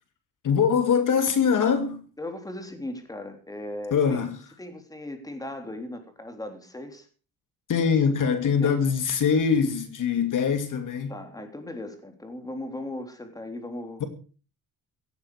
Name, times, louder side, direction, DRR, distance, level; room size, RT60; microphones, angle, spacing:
voice 1, 0.4-2.1 3.9-4.4 7.7-11.2 14.0-14.1, left 6 dB, 55° left, 2.5 m, -23 dB
voice 2, 2.2-4.2 4.6-7.1 8.6-8.8 11.1-14.0, left 1 dB, 10° left, 3.5 m, -37 dB
17.5 x 14.0 x 4.9 m
cardioid pair, 160°, 37 cm